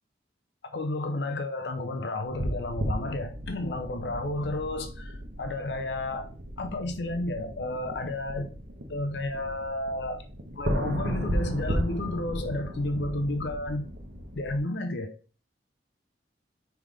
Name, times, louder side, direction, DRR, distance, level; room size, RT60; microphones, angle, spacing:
voice 1, 0.7-8.5 8.9-10.2 10.5-13.9 14.3-15.1, left 2 dB, 65° left, 0.6 m, -32 dB
sound 1, 2.2-14.6, equal, 70° right, 1.0 m, -35 dB
5.6 x 3.5 x 4.8 m
head